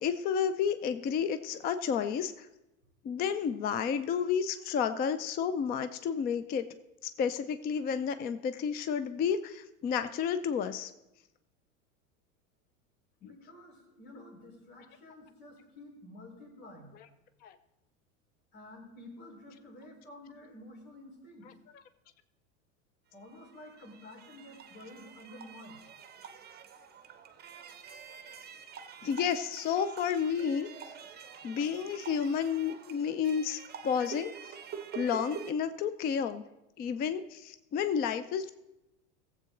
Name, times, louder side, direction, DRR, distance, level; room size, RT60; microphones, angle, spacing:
voice 1, 0.0-2.5 3.0-6.6 7.0-10.9 13.2-13.3 17.4-17.5 29.0-30.7 31.4-33.6 33.8-34.3 34.9-36.4 36.8-38.5, left 7 dB, 25° left, 12 dB, 0.4 m, -31 dB
voice 2, 13.3-17.0 18.5-21.5 23.1-25.8, left 1 dB, 75° left, -1 dB, 4.4 m, -50 dB
sound 1, 23.2-35.5, right 7 dB, 25° right, 0.8 m, -47 dB
16.0 x 7.8 x 3.8 m, 0.96 s
hypercardioid pair, 105°, 41 cm